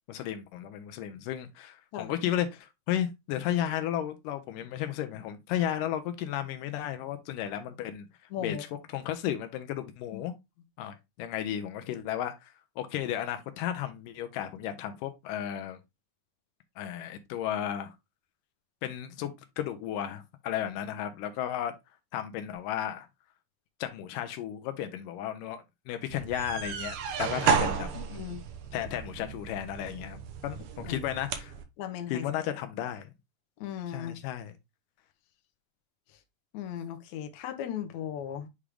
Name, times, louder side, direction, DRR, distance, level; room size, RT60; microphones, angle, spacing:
voice 1, 0.1-8.1 8.4-10.4 10.8-15.8 16.8-18.0 18.8-21.7 22.1-23.1 23.8-28.2 28.7-31.5 32.1-33.1 33.9-34.5, left 11 dB, 85° left, 2.3 m, -34 dB
voice 2, 8.3-8.6 10.1-10.2 28.2-28.4 30.9-31.0 31.8-32.2 33.6-34.1 36.5-38.5, left 9 dB, 70° left, 2.0 m, -36 dB
sound 1, 26.1-31.6, right 6 dB, 70° right, 2.1 m, -32 dB
8.3 x 3.7 x 3.3 m
omnidirectional pair, 3.8 m